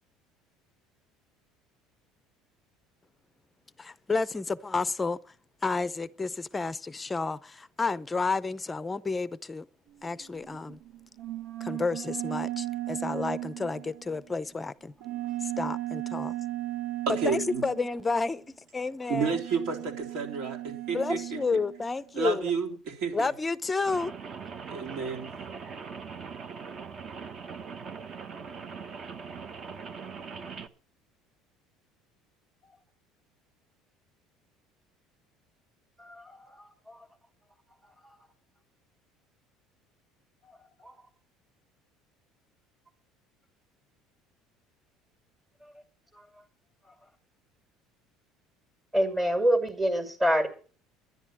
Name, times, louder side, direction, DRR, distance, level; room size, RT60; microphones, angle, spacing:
voice 1, 3.8-5.2 5.6-9.6 10.0-10.8 11.6-14.9 15.4-16.3 17.2-18.4 18.7-19.4 20.9-22.5 23.1-24.1, left 4 dB, 15° left, 0.6 m, -30 dB
sound 1, 10.0-14.3 15.0-18.3 19.2-22.0, right 15 dB, 85° right, 2.5 m, -36 dB
voice 2, 17.1-17.6 19.1-21.4 22.1-23.3 24.7-25.3, right 5 dB, 65° right, 3.5 m, -31 dB
Rain, 23.8-30.7, right 5 dB, 35° right, 1.1 m, -41 dB
voice 3, 36.0-37.1 37.8-38.2 40.4-40.5 40.8-41.0 46.1-46.3 46.8-46.9 48.9-50.5, equal, 15° right, 2.2 m, -28 dB
11.0 x 10.5 x 7.5 m
cardioid pair, 140°, 0 cm